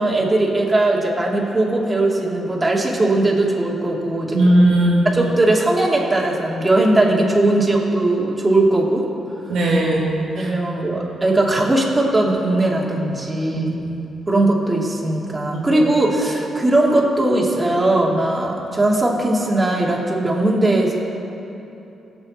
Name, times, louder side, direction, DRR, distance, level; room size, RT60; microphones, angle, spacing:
voice 1, 0.0-4.4 5.1-9.1 10.3-13.8 14.3-21.0, right 2 dB, 25° right, -3 dB, 2.7 m, -19 dB
voice 2, 4.3-5.0 9.5-10.0 10.4-10.5 13.5-13.8 15.5-15.8, right 1 dB, 75° right, -4 dB, 1.5 m, -17 dB
17.5 x 7.2 x 4.4 m, 2.9 s
supercardioid pair, 50°, 0 cm